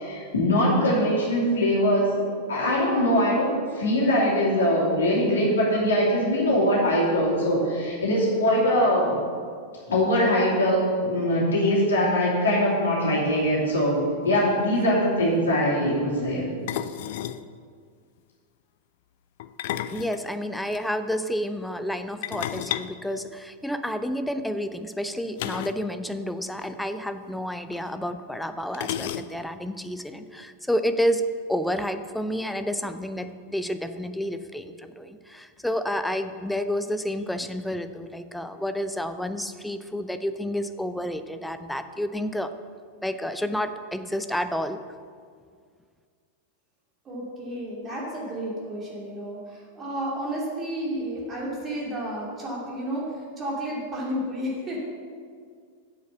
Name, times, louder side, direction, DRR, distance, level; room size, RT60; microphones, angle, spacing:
voice 1, 0.0-9.2 9.9-14.0 14.2-16.4 16.7-16.8, equal, 65° left, -6 dB, 2.9 m, -22 dB
sound 1, 14.4-14.5 14.6-14.9 16.7-17.5 19.4-20.8 22.2-23.9 25.4-25.9 26.1-26.2 26.6-26.7 27.7-27.8 28.7-29.6, left 12 dB, 50° left, 0.4 m, -33 dB
voice 2, 19.9-42.5 43.0-44.8, equal, 5° left, 9 dB, 0.5 m, -30 dB
voice 3, 47.0-54.9, equal, 25° right, -4 dB, 2.7 m, -32 dB
7.9 x 6.6 x 7.0 m, 2.1 s
figure-of-eight pair, 90°, 0 cm